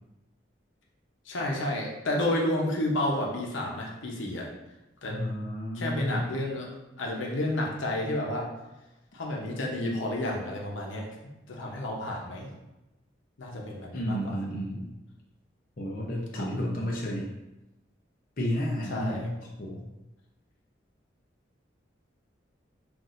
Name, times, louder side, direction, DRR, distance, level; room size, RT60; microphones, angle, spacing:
voice 1, 1.3-4.5 5.0-5.2 5.7-6.7 7.0-8.5 9.1-12.5 13.4-14.4 16.3-16.5 18.9-19.3, left 1 dB, 85° left, -1 dB, 0.8 m, -31 dB
voice 2, 5.1-6.4 13.9-14.9 15.8-17.3 18.4-19.3 19.6-19.9, equal, 45° left, -3 dB, 0.6 m, -31 dB
5.9 x 2.5 x 2.5 m, 0.98 s
head